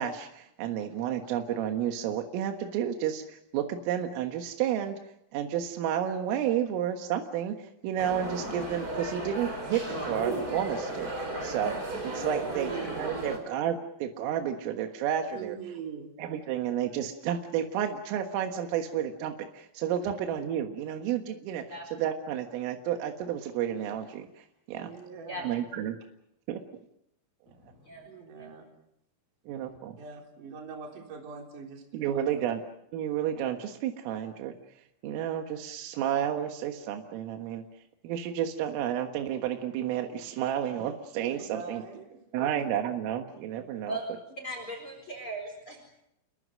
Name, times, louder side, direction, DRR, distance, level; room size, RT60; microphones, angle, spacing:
voice 1, 0.0-5.0 5.3-15.6 16.2-21.6 21.9-24.9 25.5-26.0 26.5-26.6 29.5-30.0 31.9-32.6 32.9-34.5 35.0-37.6 38.0-41.8 42.3-44.0, right 10 dB, 80° right, 4 dB, 4.1 m, -31 dB
sound 1, 8.0-13.4, right 2 dB, 20° right, 4.8 m, -34 dB
voice 2, 12.4-13.1 15.3-16.1 24.7-25.5 28.1-28.7 30.0-32.3 41.4-42.5, right 6 dB, 45° right, 1 dB, 4.6 m, -43 dB
voice 3, 27.6-28.1 28.4-28.5 29.5-29.8 43.9-44.0 44.4-45.9, right 1 dB, 25° left, 3 dB, 4.6 m, -39 dB
29.5 x 23.0 x 6.4 m, 0.79 s
omnidirectional pair, 5.8 m